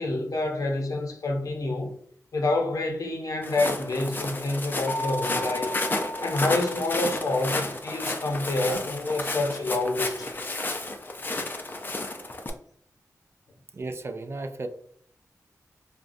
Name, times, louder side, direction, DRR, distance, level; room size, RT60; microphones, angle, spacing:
voice 1, 0.0-1.9 2.3-5.8 6.2-10.4, left 2 dB, 70° left, 0.7 m, -28 dB
Walk footsteps, 3.4-12.5, left 2 dB, 35° left, 0.4 m, -32 dB
sound 1, 4.9-7.6, left 1 dB, 5° right, 1.0 m, -35 dB
voice 2, 13.7-14.7, right 2 dB, 45° right, 0.3 m, -34 dB
3.7 x 2.2 x 2.5 m
wide cardioid pair, 95°, 6 cm